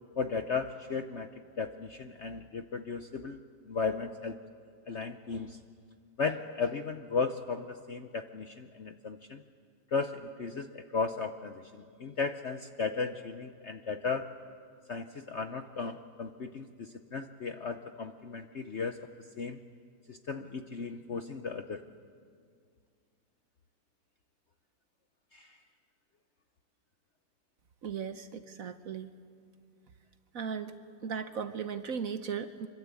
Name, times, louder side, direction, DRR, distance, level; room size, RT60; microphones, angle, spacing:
voice 1, 0.2-1.3 1.6-3.4 3.7-4.4 4.9-5.6 6.2-9.4 9.9-14.3 14.9-19.1 19.4-19.6 20.1-21.8 25.3-25.6, left 5 dB, 55° left, 8 dB, 0.8 m, -35 dB
voice 2, 27.8-29.1 30.3-30.7 31.0-32.7, right 7 dB, 55° right, 10 dB, 1.1 m, -37 dB
25.0 x 24.0 x 8.4 m, 2.2 s
omnidirectional pair, 2.0 m